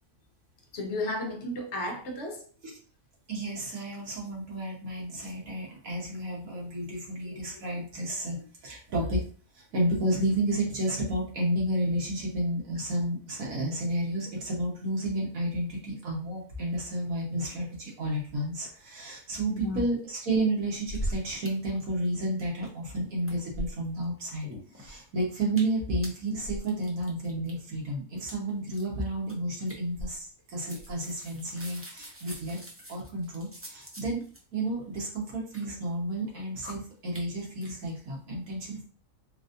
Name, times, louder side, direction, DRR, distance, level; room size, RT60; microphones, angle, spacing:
voice 1, 0.7-2.4 7.2-7.4 19.5-19.8, left 1 dB, 55° left, 3 dB, 1.0 m, -33 dB
voice 2, 3.3-9.2 9.5-24.5 24.8-32.6 32.9-34.2 34.5-38.9, right 1 dB, 75° right, -2 dB, 1.7 m, -31 dB
sound 1, 20.7-21.5 21.7-21.8 22.1-22.9 23.2-24.0 24.4-25.1 25.5-25.8 26.0-27.5 28.2-28.3 28.7-28.9 29.3-29.4 29.7-30.4 30.6-34.4 35.1-35.6 36.2-36.3 36.6-36.7 37.1-37.2 37.6-37.7, equal, 20° right, 0.3 m, -40 dB
4.0 x 2.6 x 2.6 m, 0.40 s
omnidirectional pair, 1.5 m